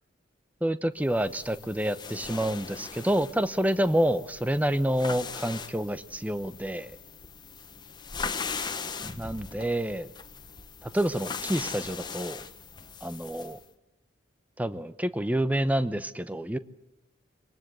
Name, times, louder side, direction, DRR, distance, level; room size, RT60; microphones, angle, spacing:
voice 1, 0.6-7.0 9.1-10.1 10.8-12.4 13.0-13.6 14.6-16.6, right 1 dB, 10° right, 13 dB, 0.8 m, -28 dB
sound 1, 1.1-13.6, left 5 dB, 20° left, 1.2 m, -39 dB
23.5 x 19.5 x 8.1 m, 0.95 s
head